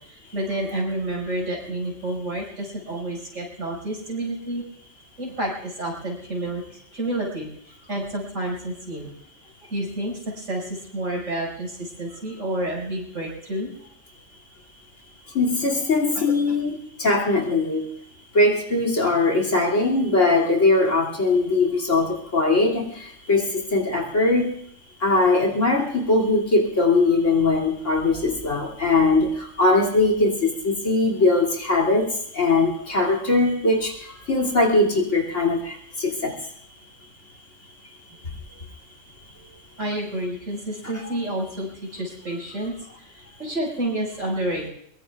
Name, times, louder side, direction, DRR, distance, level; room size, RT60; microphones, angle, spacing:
voice 1, 0.1-4.6 5.2-7.5 7.9-9.1 9.7-13.7 16.1-16.2 39.8-43.1 43.4-44.7, right 1 dB, 80° right, -1 dB, 5.7 m, -29 dB
voice 2, 15.3-17.9 18.3-24.5 25.0-32.1 32.3-36.3 40.9-41.1, left 2 dB, 70° left, 2 dB, 2.9 m, -21 dB
23.0 x 22.0 x 2.4 m, 0.69 s
omnidirectional pair, 1.3 m